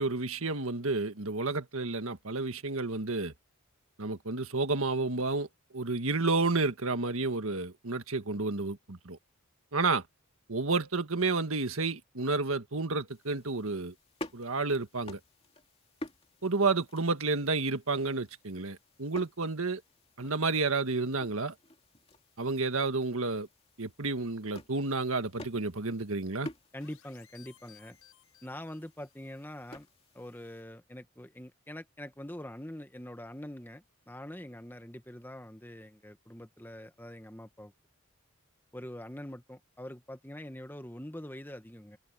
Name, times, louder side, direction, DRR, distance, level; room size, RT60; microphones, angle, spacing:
voice 1, 0.0-3.3 4.0-5.5 5.7-9.2 9.7-10.0 10.5-13.9 14.3-15.2 16.4-19.8 20.2-21.5 22.4-23.5 23.8-26.5, right 3 dB, 70° right, 1.6 m, -30 dB
sound 1, 13.1-30.6, left 1 dB, 25° left, 2.5 m, -50 dB
voice 2, 26.7-28.0 28.4-29.9 30.1-37.7 38.7-42.0, left 1 dB, 10° left, 1.3 m, -44 dB
sound 2, 26.8-29.2, left 10 dB, 85° left, 7.3 m, -60 dB
head